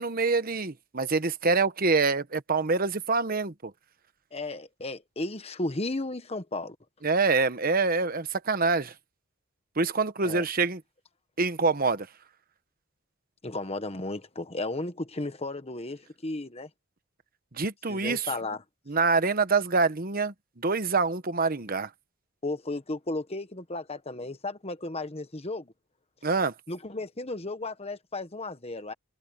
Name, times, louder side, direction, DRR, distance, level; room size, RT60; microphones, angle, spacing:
voice 1, 0.0-3.7 7.0-8.9 9.8-10.8 11.4-12.1 17.5-18.3 18.9-21.9 26.2-26.5, right 4 dB, 45° right, 1.1 m, -26 dB
voice 2, 4.3-6.8 10.2-10.5 13.4-16.7 17.9-18.6 22.4-25.7 26.7-28.9, left 2 dB, 30° left, 1.3 m, -34 dB
head